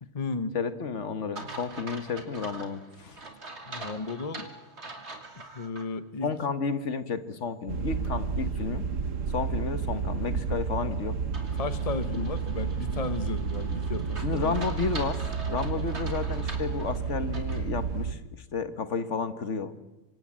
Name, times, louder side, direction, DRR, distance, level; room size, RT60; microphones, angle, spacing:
voice 1, 0.0-0.6 3.7-4.5 5.5-6.3 11.5-14.6, left 4 dB, 30° left, 12 dB, 1.2 m, -34 dB
voice 2, 0.5-3.2 6.2-8.9 9.3-11.2 12.1-12.2 14.2-19.8, left 5 dB, 70° left, 11 dB, 1.7 m, -32 dB
sound 1, 1.3-5.9 6.3-6.4 11.3-17.7, right 3 dB, 60° right, 3.1 m, -43 dB
sound 2, 7.7-18.1, right 6 dB, 85° right, 1.6 m, -31 dB
26.5 x 25.0 x 7.5 m, 1.0 s
omnidirectional pair, 1.3 m